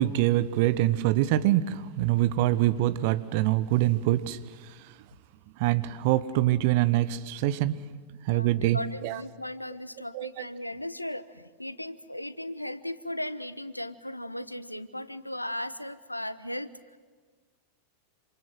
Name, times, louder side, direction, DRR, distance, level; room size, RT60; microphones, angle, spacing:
voice 1, 0.0-4.4 5.6-7.7 8.3-9.2 10.1-10.3, right 14 dB, 50° right, 15 dB, 1.1 m, -24 dB
voice 2, 8.3-16.7, left 1 dB, 85° left, 15 dB, 1.0 m, -37 dB
28.0 x 26.5 x 7.7 m, 1.5 s
figure-of-eight pair, 90°, 0 cm